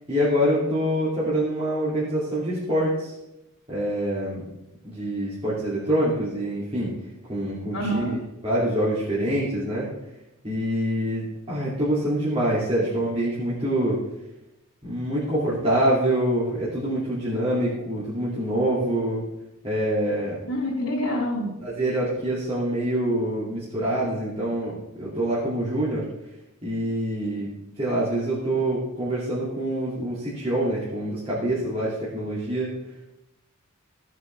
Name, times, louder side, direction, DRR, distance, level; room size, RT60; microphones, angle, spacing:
voice 1, 0.1-3.1 3.7-4.4 4.8-6.9 7.3-8.2 8.4-9.9 10.4-14.0 14.8-19.2 19.6-20.4 21.6-26.1 26.6-27.5 27.8-32.7, right 1 dB, 25° right, -9 dB, 2.8 m, -25 dB
voice 2, 7.7-8.2 20.5-21.5, equal, 85° left, -8 dB, 3.5 m, -26 dB
16.0 x 7.5 x 3.5 m, 0.92 s
head